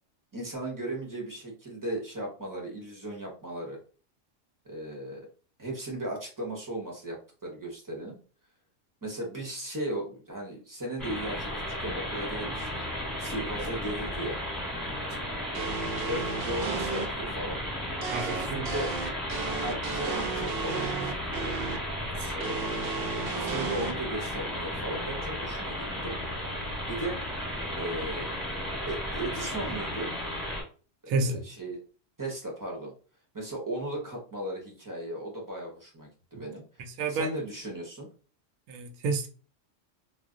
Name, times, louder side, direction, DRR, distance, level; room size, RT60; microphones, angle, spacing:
voice 1, 0.3-3.8 4.6-5.3 5.6-7.2 7.4-8.2 9.0-11.5 11.8-12.8 13.2-14.4 16.1-17.6 18.2-18.9 19.6-21.6 22.3-22.7 23.3-26.2 26.9-27.2 27.8-28.3 28.9-30.1 31.0-31.8 32.2-32.9 33.3-36.8 37.1-38.1, right 1 dB, 20° right, 0.6 m, -36 dB
sound 1, 11.0-30.6, equal, ahead, 1.0 m, -34 dB
sound 2, 15.5-17.1 18.0-21.8 22.4-23.9, right 5 dB, 65° right, 0.6 m, -33 dB
voice 2, 18.1-18.7 22.0-22.3 31.1-31.4 36.8-37.3 38.7-39.3, right 3 dB, 85° right, 1.0 m, -31 dB
2.4 x 2.1 x 3.6 m
omnidirectional pair, 1.4 m